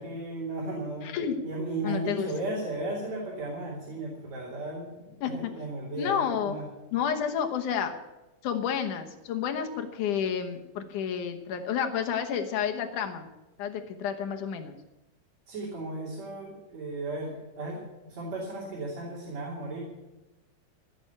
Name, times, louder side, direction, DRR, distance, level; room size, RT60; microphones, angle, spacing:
voice 1, 0.0-1.1 1.4-6.7 15.5-19.8, right 2 dB, 55° right, -4 dB, 4.2 m, -35 dB
voice 2, 1.0-1.4 1.8-2.3 5.2-5.5 6.0-6.6 6.9-8.0 8.4-13.3 13.6-14.8, left 8 dB, 75° left, 5 dB, 2.6 m, -30 dB
15.5 x 7.9 x 9.5 m, 1.0 s
omnidirectional pair, 3.7 m